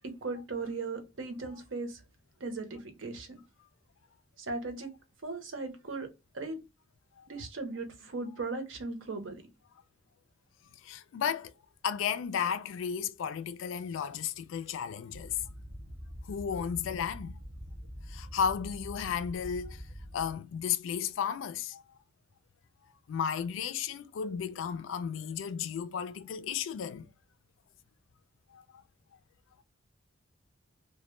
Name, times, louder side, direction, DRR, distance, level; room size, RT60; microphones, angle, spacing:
voice 1, 0.2-2.0 2.4-3.4 4.4-4.9 5.2-6.1 6.3-6.6 7.3-9.4, right 3 dB, 80° right, 0.7 m, -37 dB
voice 2, 10.8-11.5 11.8-15.4 16.2-17.4 18.1-19.8 20.1-21.8 23.1-27.1 28.5-28.6, left 7 dB, 80° left, 0.3 m, -34 dB
sound 1, 15.1-20.3, equal, 30° right, 0.6 m, -45 dB
2.1 x 2.0 x 3.0 m
head